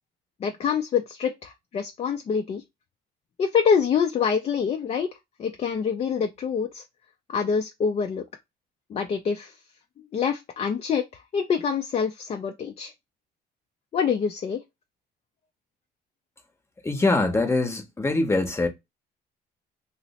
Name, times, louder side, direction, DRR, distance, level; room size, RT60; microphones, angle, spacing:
voice 1, 0.4-2.6 3.4-5.1 5.4-6.8 7.3-8.2 8.9-9.5 10.1-12.9 13.9-14.6, left 6 dB, 35° left, 0.4 m, -26 dB
voice 2, 16.8-18.7, left 2 dB, 15° left, 0.8 m, -23 dB
2.9 x 2.0 x 4.0 m
cardioid pair, 110°, 17 cm